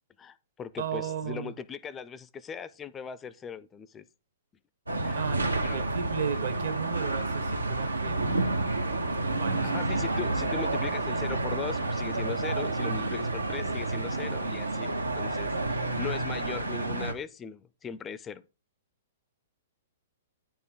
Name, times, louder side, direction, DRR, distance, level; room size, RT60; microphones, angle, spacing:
voice 1, 0.2-4.0 5.0-5.2 5.6-5.8 9.7-18.4, left 7 dB, 20° left, 0.4 m, -39 dB
voice 2, 0.8-1.5 5.1-8.4 9.3-9.7, right 7 dB, 60° right, 1.2 m, -35 dB
sound 1, 4.9-17.1, right 2 dB, 85° right, 0.8 m, -30 dB
9.6 x 4.4 x 3.7 m
figure-of-eight pair, 110°, 0 cm